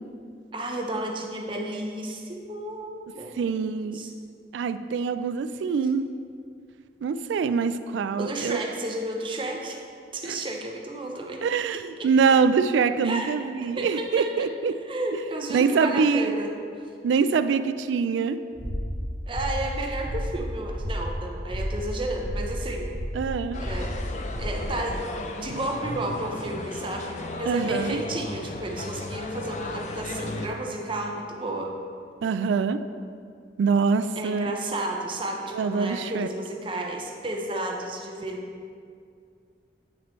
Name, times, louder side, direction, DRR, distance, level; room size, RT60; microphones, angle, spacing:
voice 1, 0.5-4.1 8.2-9.8 10.1-11.4 12.0-12.1 13.0-13.3 13.8-14.5 14.9-16.9 19.3-23.0 23.6-24.1 24.4-25.1 25.3-31.7 34.2-38.5, right 1 dB, 30° right, 1 dB, 0.6 m, -32 dB
voice 2, 3.4-4.0 4.5-6.0 7.0-8.6 10.3-10.4 11.4-14.8 15.5-16.3 17.0-18.4 23.1-23.6 27.5-28.0 32.2-32.8 33.6-34.5 35.5-36.3, right 5 dB, 80° right, 11 dB, 0.3 m, -24 dB
sound 1, 18.5-24.9, equal, 10° right, 1.8 m, -32 dB
sound 2, 23.5-30.5, left 2 dB, 40° left, 0.4 m, -36 dB
8.1 x 5.9 x 3.1 m, 2.3 s
head